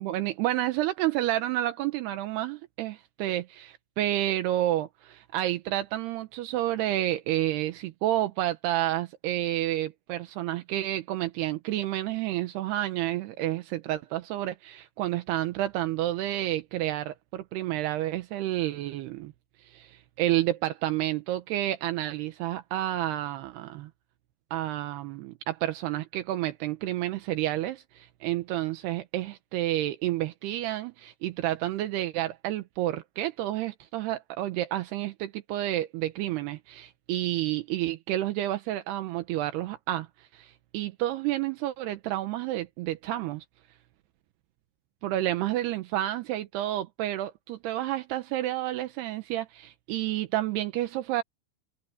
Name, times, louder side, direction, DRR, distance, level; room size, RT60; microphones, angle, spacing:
voice 1, 0.0-19.3 19.6-23.9 24.5-43.4 45.0-51.2, right 14 dB, 80° right, 2.4 m, -30 dB
omnidirectional pair, 5.8 m